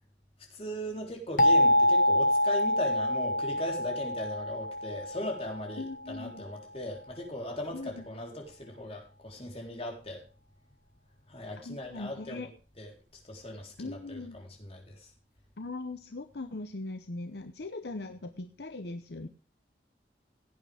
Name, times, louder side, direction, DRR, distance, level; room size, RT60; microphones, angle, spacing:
voice 1, 0.5-10.2 11.3-12.5 12.8-12.9 13.2-15.1, left 1 dB, 35° left, 1 dB, 3.7 m, -38 dB
sound 1, 1.4-6.1, left 1 dB, 50° left, 1.2 m, -26 dB
voice 2, 5.8-6.4 7.7-8.0 11.6-12.5 13.8-14.4 15.6-19.3, left 2 dB, 70° left, 8 dB, 0.8 m, -40 dB
17.0 x 8.8 x 3.5 m, 0.35 s
head